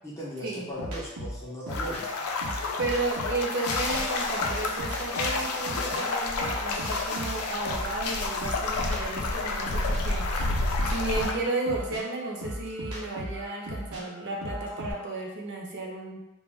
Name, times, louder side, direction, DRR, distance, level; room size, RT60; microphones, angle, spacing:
voice 1, 0.0-2.1, equal, 15° left, -6 dB, 0.4 m, -37 dB
sound 1, 0.8-4.0 4.4-8.0 8.4-14.9, equal, 90° right, 0.7 m, -37 dB
sound 2, 1.7-11.3, left 3 dB, 90° left, 0.4 m, -30 dB
voice 2, 2.8-10.6 10.9-16.3, right 2 dB, 55° right, -2 dB, 0.6 m, -33 dB
2.2 x 2.1 x 3.3 m, 0.99 s
head